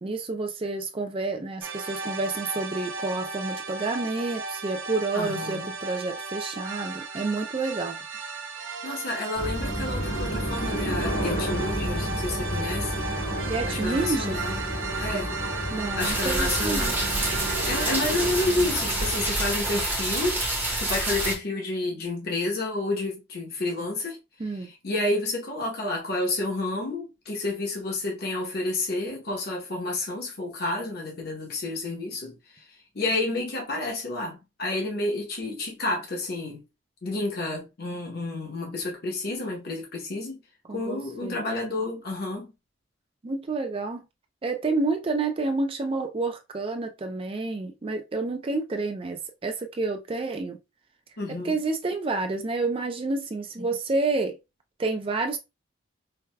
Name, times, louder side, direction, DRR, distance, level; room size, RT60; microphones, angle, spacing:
voice 1, 0.0-8.0 13.4-14.4 15.7-16.9 24.4-24.7 40.7-41.4 43.2-44.0 44.4-50.6 51.4-54.4 54.8-55.4, right 3 dB, 25° right, 0.3 m, -29 dB
sound 1, 1.6-19.4, right 4 dB, 75° right, 0.7 m, -36 dB
voice 2, 5.1-5.7 8.8-13.1 13.7-14.6 15.0-15.4 16.0-17.0 17.3-20.4 20.8-24.2 24.5-32.6 32.9-36.6 37.0-40.4 40.7-42.5 51.2-51.6, left 2 dB, 50° left, 0.9 m, -30 dB
sound 2, 9.4-19.3, equal, 85° left, 2.0 m, -31 dB
sound 3, 16.0-21.4, right 1 dB, 10° right, 0.7 m, -28 dB
4.6 x 2.3 x 2.2 m
head